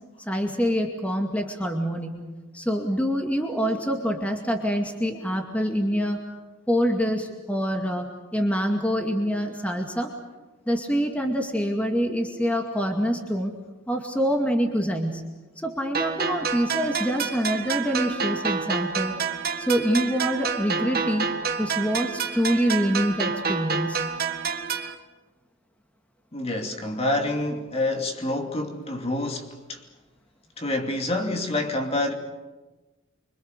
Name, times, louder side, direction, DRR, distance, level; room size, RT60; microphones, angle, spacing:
voice 1, 0.3-2.3 2.5-6.2 6.7-8.1 8.3-10.1 10.7-13.5 13.9-15.2 15.6-19.1 19.6-24.1, equal, 5° left, 2.2 m, -25 dB
sound 1, 15.9-24.9, right 5 dB, 45° right, 1.8 m, -28 dB
voice 2, 26.3-29.8 30.6-32.1, left 2 dB, 30° left, 2.6 m, -27 dB
25.5 x 25.5 x 6.7 m
head